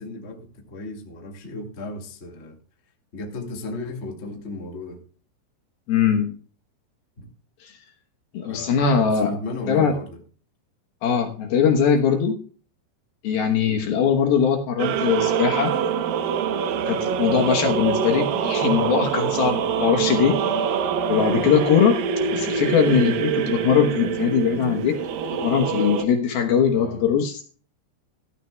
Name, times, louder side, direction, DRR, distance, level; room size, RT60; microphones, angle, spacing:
voice 1, 0.0-2.5 3.1-5.0 7.2-7.3 8.5-10.2 11.6-11.7 13.6-13.8 19.9-20.2 21.1-21.3 26.7-27.1, left 2 dB, 40° left, 2 dB, 0.9 m, -35 dB
voice 2, 5.9-6.3 7.6-7.7 8.3-9.3 9.7-10.0 11.0-12.4 13.2-15.8 16.9-20.4 21.1-22.0 22.3-25.0 25.3-27.4, left 7 dB, 70° left, 4 dB, 2.6 m, -21 dB
sound 1, 14.8-26.0, right 7 dB, 80° right, 2.0 m, -25 dB
15.5 x 14.0 x 2.3 m, 0.41 s
omnidirectional pair, 5.5 m